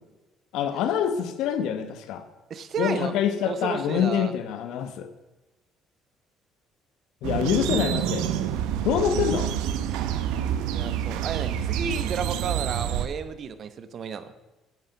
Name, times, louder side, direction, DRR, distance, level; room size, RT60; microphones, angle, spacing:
voice 1, 0.5-2.3 2.8-5.1 7.2-8.3 8.8-9.5, left 8 dB, 75° left, 10 dB, 1.0 m, -25 dB
voice 2, 2.5-3.1 3.4-4.3 10.7-14.3, right 6 dB, 55° right, 12 dB, 0.9 m, -32 dB
sound 1, 7.2-13.1, right 10 dB, 80° right, 0.7 m, -27 dB
9.2 x 8.7 x 5.8 m, 1.1 s
hypercardioid pair, 60°, 0 cm